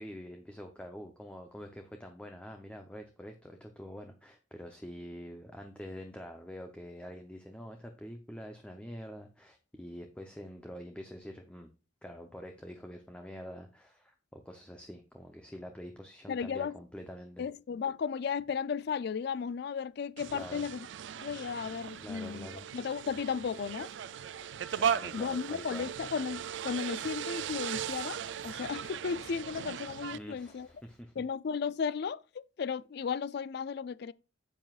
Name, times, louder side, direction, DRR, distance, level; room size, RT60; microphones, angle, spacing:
voice 1, 0.0-11.7 12.0-17.5 20.3-20.6 22.0-22.7 24.7-25.9 30.1-31.2, equal, 5° left, 0.7 m, -46 dB
voice 2, 16.3-16.8 17.4-20.9 21.2-23.9 25.1-30.7 31.2-34.1, left 6 dB, 60° left, 0.4 m, -35 dB
sound 1, 20.2-30.2, right 8 dB, 70° right, 0.4 m, -37 dB
Writing, 21.6-31.0, left 2 dB, 40° left, 1.3 m, -63 dB
9.0 x 7.9 x 2.4 m
head